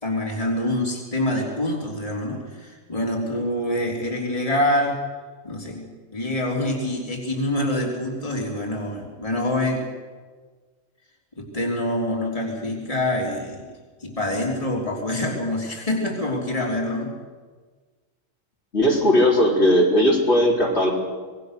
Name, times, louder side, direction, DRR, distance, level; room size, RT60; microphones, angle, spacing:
voice 1, 0.0-5.0 5.4-9.8 11.4-13.7 14.0-17.1, left 1 dB, 25° left, -1 dB, 3.5 m, -26 dB
voice 2, 18.7-20.9, equal, 55° left, -2 dB, 4.1 m, -18 dB
26.0 x 20.0 x 6.6 m, 1.4 s
omnidirectional pair, 1.3 m